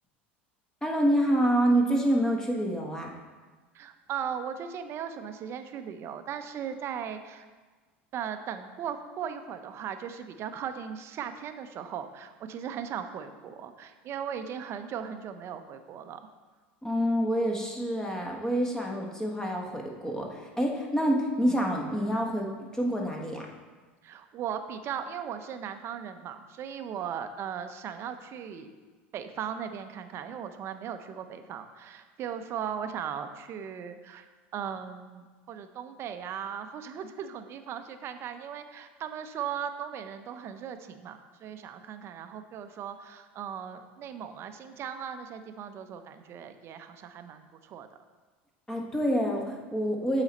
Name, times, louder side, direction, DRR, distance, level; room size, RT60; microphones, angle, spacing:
voice 1, 0.8-3.1 16.8-23.5 48.7-50.2, equal, 10° left, 0 dB, 1.2 m, -27 dB
voice 2, 3.7-7.5 8.1-16.2 24.0-28.7 29.1-34.3 34.5-47.9, right 8 dB, 45° right, 9 dB, 0.6 m, -38 dB
8.0 x 4.1 x 4.2 m, 1.4 s
hypercardioid pair, 90°, 6 cm